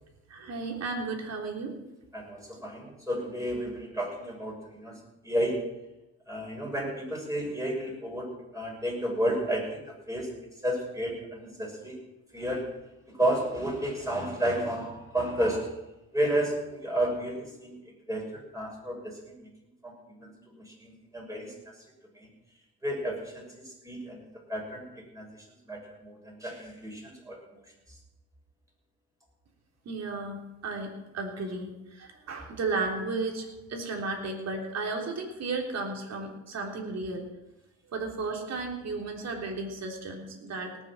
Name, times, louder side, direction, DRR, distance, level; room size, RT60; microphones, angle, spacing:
voice 1, 0.3-1.8 29.9-37.3 37.9-40.8, right 3 dB, 60° right, 2 dB, 3.5 m, -34 dB
voice 2, 2.1-5.7 6.3-10.3 10.6-12.0 12.3-12.7 13.1-15.7 16.1-17.7 18.1-19.5 19.8-21.8 22.1-22.3 22.8-24.2 24.5-25.3 25.7-27.6 27.9-28.0, right 1 dB, 10° right, -2 dB, 6.5 m, -32 dB
18.0 x 7.5 x 7.5 m, 0.96 s
cardioid pair, 90°, 30 cm